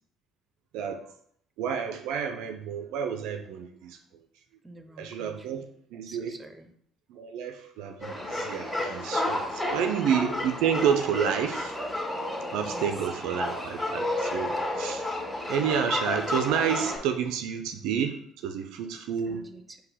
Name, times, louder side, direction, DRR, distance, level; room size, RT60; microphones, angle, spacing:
voice 1, 0.7-1.0 1.6-4.0 5.0-5.6 5.9-6.4 7.1-11.7 12.5-15.0 15.5-18.1 18.4-19.4, right 8 dB, 70° right, 6 dB, 0.3 m, -29 dB
voice 2, 4.6-5.7 6.0-6.7 9.5-10.1 12.7-12.9 14.7-14.9 19.3-19.8, right 2 dB, 20° right, 7 dB, 0.6 m, -48 dB
sound 1, 8.0-17.0, left 1 dB, 10° left, 1.7 m, -31 dB
5.3 x 2.1 x 4.1 m, 0.65 s
hypercardioid pair, 60°, 0 cm